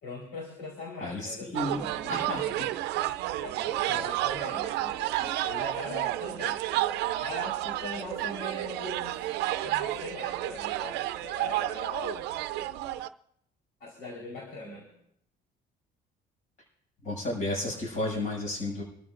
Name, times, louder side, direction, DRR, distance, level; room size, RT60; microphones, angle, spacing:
voice 1, 0.0-2.7 3.4-6.6 7.1-12.2 13.8-14.9, left 2 dB, 85° left, -1 dB, 4.1 m, -41 dB
voice 2, 1.0-1.8 2.1-2.6 17.0-18.8, left 1 dB, 50° left, -3 dB, 6.9 m, -32 dB
sound 1, 1.5-13.1, right 15 dB, 85° right, 0.5 m, -31 dB
26.0 x 13.5 x 2.5 m, 0.74 s
cardioid pair, 110°, 17 cm